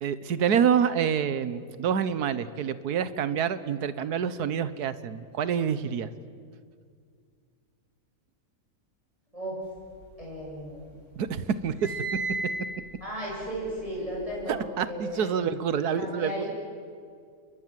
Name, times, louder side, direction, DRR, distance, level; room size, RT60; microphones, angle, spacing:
voice 1, 0.0-6.1 11.2-12.0 14.5-16.4, right 7 dB, 90° right, 14 dB, 1.6 m, -27 dB
sound 1, 9.8-10.8 11.1-14.6, right 3 dB, 50° right, 4.6 m, -36 dB
voice 2, 10.2-10.9 13.0-15.3 15.7-16.5, equal, 20° right, -5 dB, 7.9 m, -35 dB
29.0 x 22.5 x 7.6 m, 2.2 s
omnidirectional pair, 1.6 m